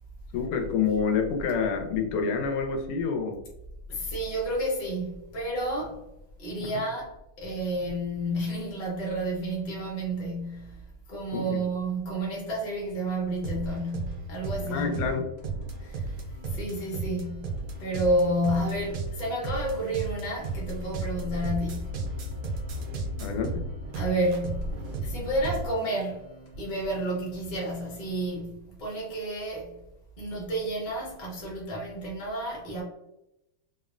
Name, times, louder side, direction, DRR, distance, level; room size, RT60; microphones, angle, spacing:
voice 1, 0.3-3.4 6.6-6.7 11.3-11.6 14.7-15.3 23.2-23.6, left 5 dB, 85° left, 1.5 m, -28 dB
voice 2, 3.9-6.0 6.4-15.0 15.8-16.2 16.4-22.0 23.9-26.2 26.6-29.8 30.2-32.8, right 1 dB, 45° left, 0.5 m, -31 dB
sound 1, 13.4-25.7, right 2 dB, 85° right, 0.9 m, -34 dB
sound 2, 13.5-28.3, right 3 dB, 70° left, 1.4 m, -50 dB
3.6 x 2.1 x 2.4 m
omnidirectional pair, 2.4 m